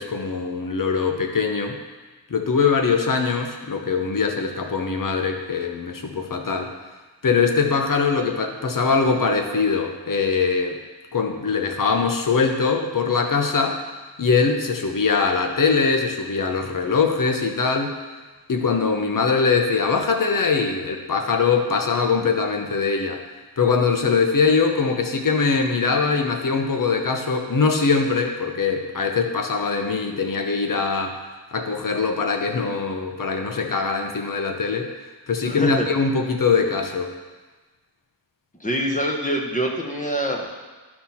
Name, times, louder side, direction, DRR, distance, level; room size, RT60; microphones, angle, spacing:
voice 1, 0.0-1.8 2.3-6.7 7.2-10.8 11.1-13.8 14.2-18.0 18.5-23.2 23.6-31.2 31.5-34.9 35.3-37.1, left 5 dB, 45° left, 3 dB, 1.0 m, -22 dB
voice 2, 35.4-35.9 38.6-40.5, equal, 15° left, 0 dB, 1.3 m, -25 dB
11.5 x 4.4 x 5.7 m, 1.3 s
wide cardioid pair, 105°, 46 cm